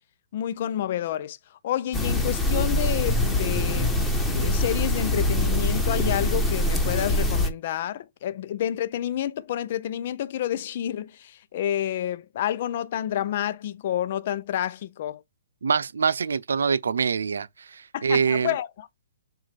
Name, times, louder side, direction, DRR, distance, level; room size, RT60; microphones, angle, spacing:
voice 1, 0.3-4.0 4.3-15.2 17.9-18.7, left 11 dB, 50° left, 0.7 m, -29 dB
sound 1, 1.9-7.5, left 1 dB, 5° left, 1.3 m, -24 dB
voice 2, 15.6-18.5, right 6 dB, 85° right, 0.6 m, -25 dB
7.4 x 2.6 x 5.2 m
hypercardioid pair, 155°, 0 cm